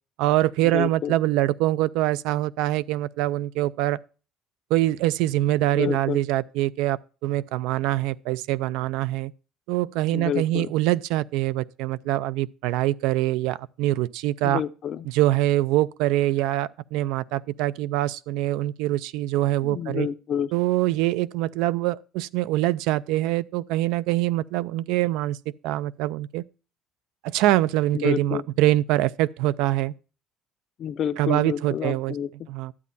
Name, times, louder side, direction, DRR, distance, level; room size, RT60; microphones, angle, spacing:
voice 1, 0.2-4.0 4.7-9.3 9.7-14.6 15.1-20.1 20.5-25.4 25.6-26.4 27.2-29.9 31.2-32.1 32.5-32.7, right 15 dB, 80° right, 0.4 m, -24 dB
voice 2, 0.7-1.1 5.7-6.2 10.1-10.7 14.4-15.1 19.6-20.5 27.9-28.4 30.8-32.5, left 9 dB, 40° left, 0.5 m, -29 dB
12.0 x 8.3 x 2.7 m
cardioid pair, 175°, 0 cm